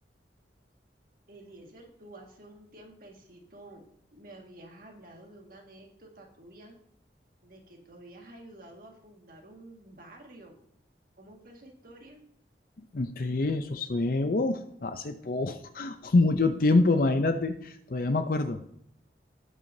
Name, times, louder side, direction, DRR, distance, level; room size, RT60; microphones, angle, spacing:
voice 1, 1.3-3.8 4.1-6.8 7.4-10.6 11.2-12.2, right 1 dB, 55° right, 1 dB, 1.9 m, -50 dB
voice 2, 12.9-18.6, left 2 dB, 55° left, 8 dB, 0.5 m, -26 dB
18.0 x 6.2 x 2.7 m, 0.72 s
head